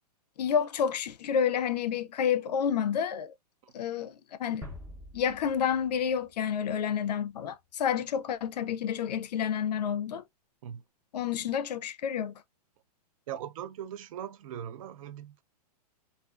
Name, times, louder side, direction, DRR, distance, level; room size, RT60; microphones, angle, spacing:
voice 1, 0.4-3.3 3.7-4.7 5.1-10.2 11.1-12.3, left 8 dB, 80° left, 0.5 m, -29 dB
sound 1, 4.6-7.5, left 1 dB, 10° right, 0.7 m, -47 dB
voice 2, 13.3-15.4, right 10 dB, 55° right, 0.4 m, -40 dB
2.4 x 2.3 x 2.3 m
hypercardioid pair, 140°, 21 cm